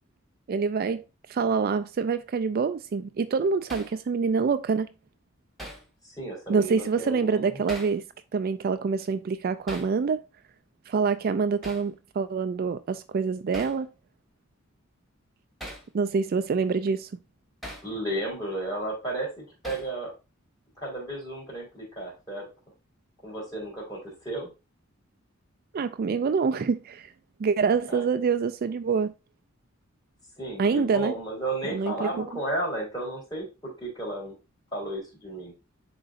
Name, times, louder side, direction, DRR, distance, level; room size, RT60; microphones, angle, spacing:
voice 1, 0.5-1.0 1.3-4.9 6.5-8.0 8.3-10.2 10.9-13.9 15.9-17.1 25.7-27.1 27.4-29.1 30.6-31.1 31.6-32.2, right 5 dB, 50° right, 0.3 m, -26 dB
Hammer, 3.7-4.0 5.6-5.9 7.7-8.0 9.7-9.9 11.6-11.9 13.5-13.8 15.6-15.9 17.6-17.9 19.6-19.9, equal, ahead, 1.5 m, -40 dB
voice 2, 6.0-7.6 17.8-20.1 20.8-22.5 23.2-24.5 27.9-28.0 30.4-34.4 34.7-35.5, right 1 dB, 20° left, 3.8 m, -33 dB
10.0 x 3.9 x 2.5 m
head